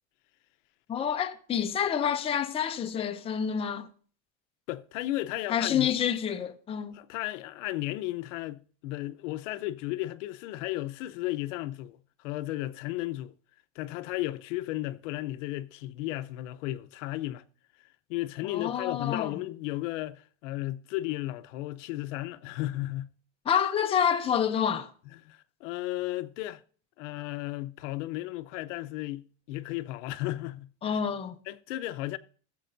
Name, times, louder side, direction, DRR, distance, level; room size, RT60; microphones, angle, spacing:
voice 1, 0.9-3.9 5.5-7.0 18.4-19.3 23.5-24.9 30.8-31.4, left 8 dB, 15° left, 0.5 m, -28 dB
voice 2, 4.7-5.9 6.9-13.3 13.7-17.4 18.1-23.1 25.1-26.6 27.0-31.0 31.5-32.2, left 16 dB, 90° left, 0.7 m, -34 dB
14.5 x 7.5 x 2.6 m
cardioid pair, 145°, 36 cm